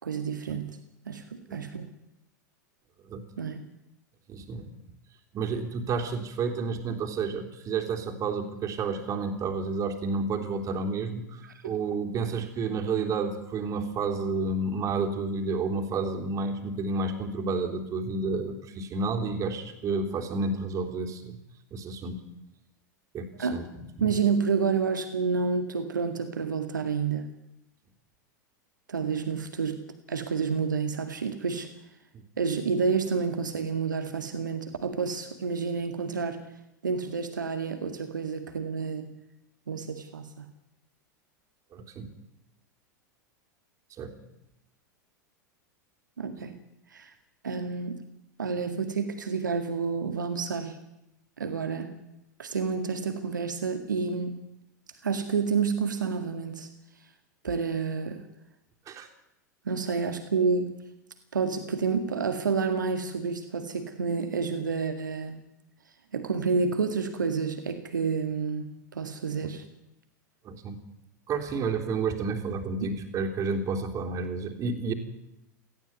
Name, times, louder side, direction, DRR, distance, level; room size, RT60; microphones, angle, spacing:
voice 1, 0.0-0.8 1.1-1.9 3.4-3.6 11.5-11.6 23.4-23.6 24.0-27.3 28.9-29.8 30.1-31.7 32.4-36.4 36.8-39.1 39.7-40.5 46.2-46.5 46.9-47.1 47.4-48.0 48.4-50.8 51.4-51.9 52.4-54.4 55.0-56.7 57.4-58.2 59.7-60.7 61.3-65.4 66.1-69.6 72.8-72.9, right 5 dB, 80° right, 8 dB, 2.0 m, -29 dB
voice 2, 4.3-4.7 5.3-21.4 21.7-22.2 23.1-23.7 24.0-24.1 32.1-32.2 41.7-42.1 44.0-44.1 58.9-59.1 69.4-69.5 70.5-70.8 71.3-74.9, right 4 dB, 35° right, 3 dB, 3.5 m, -30 dB
18.5 x 15.0 x 9.6 m, 0.86 s
figure-of-eight pair, 90°, 10 cm